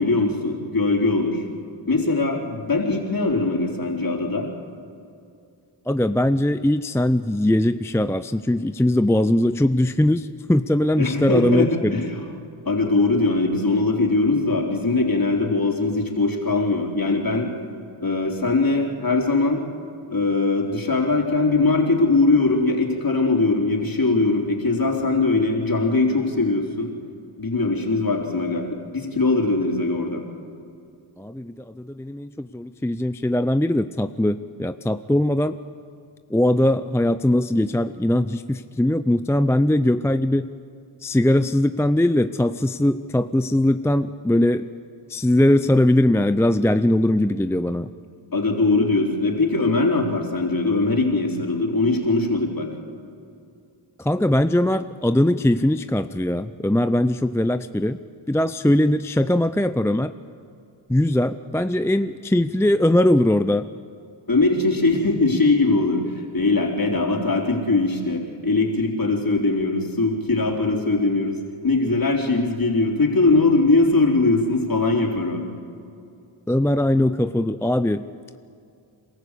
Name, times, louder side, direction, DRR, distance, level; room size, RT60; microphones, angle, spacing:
voice 1, 0.0-1.4 1.9-4.5 11.0-12.2 12.7-17.5 18.0-19.6 20.1-26.9 27.4-30.2 48.3-52.7 64.3-71.4 71.6-75.4, left 3 dB, 45° left, 1 dB, 4.1 m, -21 dB
voice 2, 5.9-12.0 31.2-35.6 36.3-40.5 41.0-44.6 45.1-47.9 54.0-58.0 58.3-60.1 60.9-63.7 76.5-78.1, left 1 dB, 5° left, 11 dB, 0.5 m, -20 dB
27.5 x 14.0 x 8.4 m, 2.5 s
cardioid pair, 55°, 49 cm